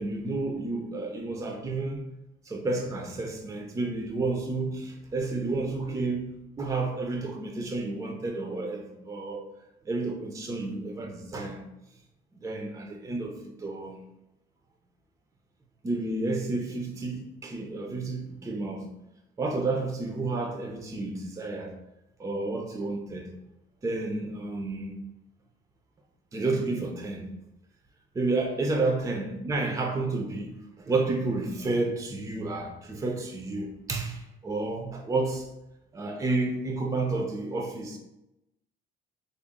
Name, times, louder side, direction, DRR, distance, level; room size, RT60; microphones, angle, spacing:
voice 1, 0.0-2.0 2.5-6.3 6.6-9.4 9.8-11.6 12.4-14.0 15.8-18.9 19.4-21.7 22.2-23.3 23.8-24.9 26.3-27.3 28.1-35.5 35.9-38.0, right 3 dB, 20° right, 2 dB, 0.5 m, -31 dB
3.9 x 2.0 x 3.6 m, 0.90 s
cardioid pair, 110°, 17 cm